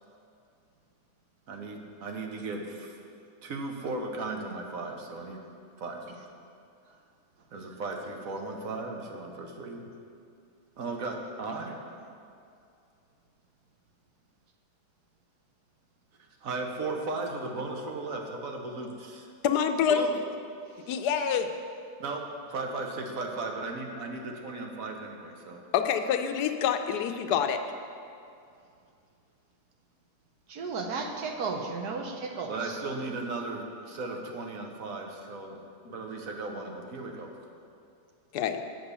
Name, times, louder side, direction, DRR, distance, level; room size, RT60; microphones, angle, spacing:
voice 1, 1.5-3.0 3.4-5.4 5.8-6.2 7.5-9.9 10.8-11.8 16.4-19.3 19.9-20.1 22.0-25.6 32.5-35.6 35.9-37.3, right 3 dB, 65° right, 2 dB, 1.3 m, -36 dB
voice 2, 19.4-20.1 20.9-21.5 25.7-27.6 38.3-38.6, left 8 dB, 80° left, 7 dB, 1.2 m, -26 dB
voice 3, 30.5-32.8, right 4 dB, 80° right, 3 dB, 1.4 m, -34 dB
7.9 x 6.0 x 6.8 m, 2.4 s
omnidirectional pair, 1.7 m